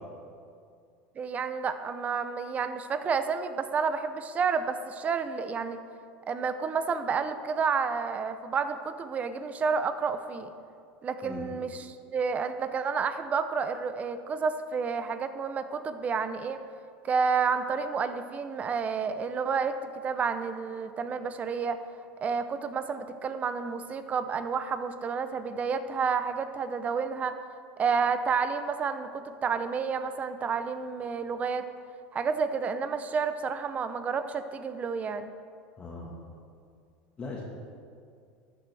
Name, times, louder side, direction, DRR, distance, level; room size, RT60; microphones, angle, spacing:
voice 1, 1.2-5.8 6.3-10.5 11.0-16.6 17.0-21.8 22.2-27.3 27.8-31.6 32.1-35.3, right 5 dB, 30° right, 10 dB, 0.7 m, -30 dB
voice 2, 35.8-36.1 37.2-37.4, left 3 dB, 25° left, -4 dB, 1.5 m, -39 dB
13.0 x 9.7 x 3.4 m, 2.3 s
supercardioid pair, 120°, 5 cm